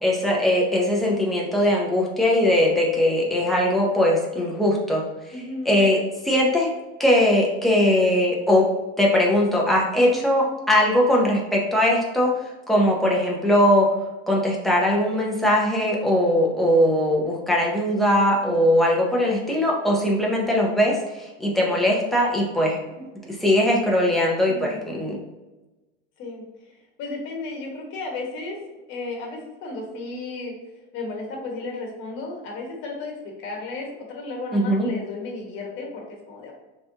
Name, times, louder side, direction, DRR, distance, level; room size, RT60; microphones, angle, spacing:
voice 1, 0.0-5.0 5.7-6.0 6.2-6.7 7.0-8.7 9.0-12.4 12.7-13.9 14.3-22.8 23.4-25.2 34.5-34.9, left 1 dB, ahead, -3 dB, 0.6 m, -20 dB
voice 2, 5.3-5.8 9.9-10.2 24.5-25.0 26.2-26.5 27.0-28.6 28.9-30.5 30.9-36.5, left 3 dB, 40° left, 0 dB, 1.2 m, -34 dB
4.1 x 3.5 x 2.7 m, 1.1 s
supercardioid pair, 155°, 29 cm